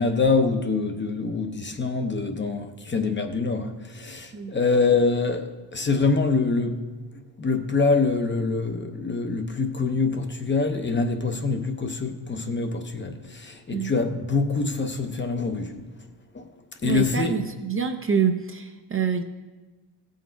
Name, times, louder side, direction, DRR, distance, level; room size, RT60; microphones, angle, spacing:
voice 1, 0.0-6.8 7.4-15.7 16.3-16.4 16.8-17.3, left 4 dB, 25° left, 0.7 m, -25 dB
voice 2, 16.8-19.2, right 6 dB, 30° right, 0.6 m, -26 dB
16.0 x 6.4 x 4.5 m
wide cardioid pair, 155°, 45 cm